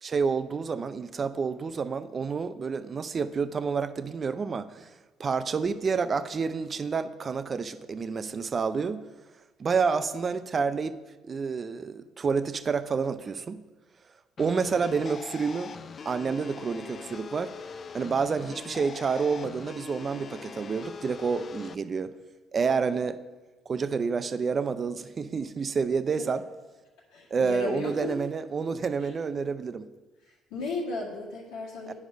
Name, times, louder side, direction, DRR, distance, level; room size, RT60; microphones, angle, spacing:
voice 1, 0.0-4.9 5.2-9.0 9.6-11.0 11.3-13.6 14.4-15.7 16.0-17.5 17.9-22.1 22.5-23.2 23.7-26.4 27.3-29.9 31.9-32.0, right 5 dB, 40° right, 12 dB, 0.5 m, -29 dB
sound 1, 14.4-21.7, left 6 dB, 40° left, 0.3 m, -42 dB
voice 2, 27.1-28.1 29.0-29.1 30.2-31.9, left 3 dB, 85° left, -6 dB, 1.7 m, -35 dB
9.4 x 4.9 x 5.2 m, 1.2 s
supercardioid pair, 80°, 0 cm